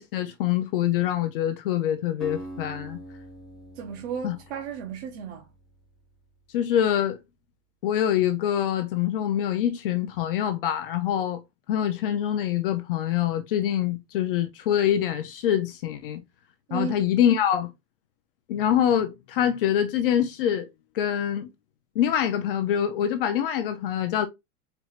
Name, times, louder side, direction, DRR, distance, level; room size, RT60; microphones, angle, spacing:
voice 1, 0.0-3.0 4.2-4.4 6.5-7.2 7.8-11.4 11.7-16.2 16.7-17.7 18.5-20.7 20.9-21.5 22.0-24.3, left 10 dB, 40° left, 0.5 m, -25 dB
Acoustic guitar, 2.2-6.3, right 1 dB, ahead, 1.0 m, -43 dB
voice 2, 3.7-5.5 16.7-17.1, right 6 dB, 50° right, 0.8 m, -34 dB
4.6 x 4.1 x 2.4 m
supercardioid pair, 175°, 43 cm